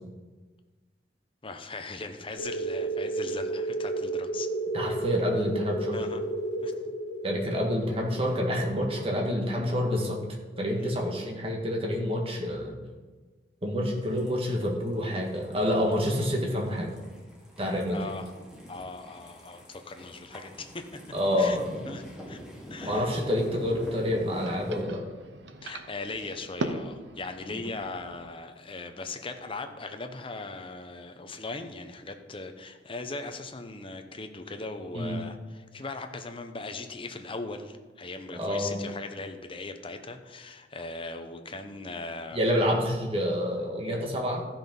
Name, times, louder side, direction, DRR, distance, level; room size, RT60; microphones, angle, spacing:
voice 1, 1.4-4.5 5.9-6.2 6.6-7.0 9.0-9.2 10.8-11.0 17.9-18.3 18.7-20.9 21.4-21.6 21.9-22.4 22.7-23.1 25.6-42.4, left 3 dB, 30° left, 6 dB, 0.9 m, -39 dB
sound 1, 2.4-10.7, right 2 dB, 75° left, 1.9 m, -33 dB
voice 2, 4.7-6.0 7.2-10.2 10.6-12.7 13.6-16.9 17.6-18.0 21.1-21.9 22.8-25.0 27.5-27.6 34.9-35.2 38.4-38.8 42.3-44.5, equal, 35° right, 0 dB, 1.8 m, -28 dB
sound 2, 14.0-24.8, equal, 5° right, 2.0 m, -46 dB
sound 3, 23.3-28.3, right 2 dB, 80° right, 0.9 m, -40 dB
13.5 x 6.0 x 5.4 m, 1.3 s
head